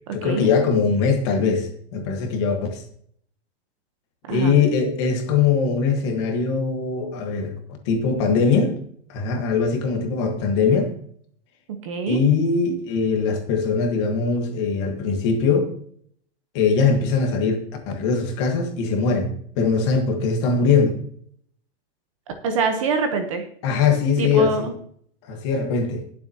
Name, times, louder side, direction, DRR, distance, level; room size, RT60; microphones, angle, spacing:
voice 1, 0.1-2.8 4.3-7.5 7.8-8.8 9.1-10.9 12.1-15.7 16.5-17.6 17.9-19.3 19.5-21.0 23.6-24.7 25.3-26.0, left 5 dB, 25° left, 4 dB, 1.5 m, -21 dB
voice 2, 4.3-4.6 11.8-12.2 22.4-23.4 24.2-24.7, right 5 dB, 30° right, 6 dB, 0.9 m, -24 dB
20.5 x 7.1 x 2.9 m, 0.62 s
supercardioid pair, 180°, 33 cm